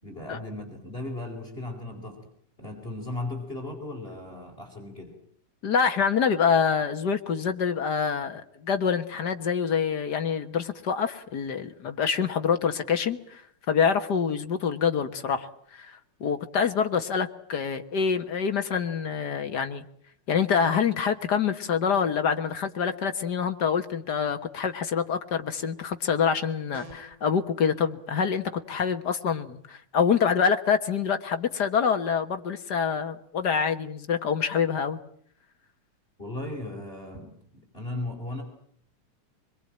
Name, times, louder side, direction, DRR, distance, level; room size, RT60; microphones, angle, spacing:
voice 1, 0.0-2.2 2.6-5.2 36.2-38.4, left 2 dB, 20° left, 3 dB, 4.6 m, -36 dB
voice 2, 5.6-13.4 13.7-15.5 15.8-19.8 20.3-35.0, left 6 dB, 50° left, 8 dB, 1.3 m, -26 dB
sound 1, 26.7-27.3, equal, 15° right, 1.8 m, -44 dB
26.0 x 22.5 x 8.8 m, 0.64 s
omnidirectional pair, 3.4 m